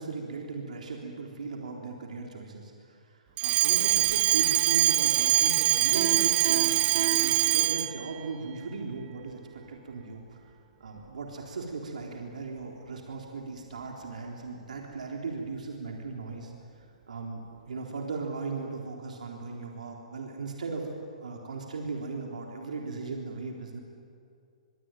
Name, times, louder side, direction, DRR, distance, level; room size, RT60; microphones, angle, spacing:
voice 1, 0.0-3.1 3.4-6.7 7.1-10.4 10.8-16.5 17.1-20.9 21.2-23.8, right 4 dB, 80° right, 0 dB, 3.7 m, -37 dB
Alarm, 3.4-8.0, right 14 dB, 25° right, 0.7 m, -24 dB
Piano, 5.9-8.2, right 11 dB, 55° right, 3.8 m, -34 dB
24.0 x 23.5 x 9.2 m, 2.4 s
hypercardioid pair, 130°, 4 cm